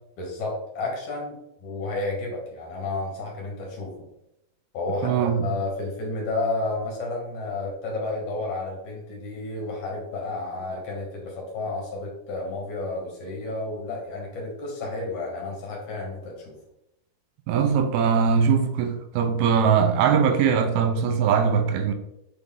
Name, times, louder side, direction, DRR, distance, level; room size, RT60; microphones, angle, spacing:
voice 1, 0.2-1.4 1.6-3.9 4.7-16.6, left 2 dB, 60° left, 2.7 m, -31 dB
voice 2, 5.0-5.5 17.5-21.9, right 6 dB, 90° right, 2.6 m, -21 dB
7.4 x 4.1 x 3.7 m
omnidirectional pair, 4.4 m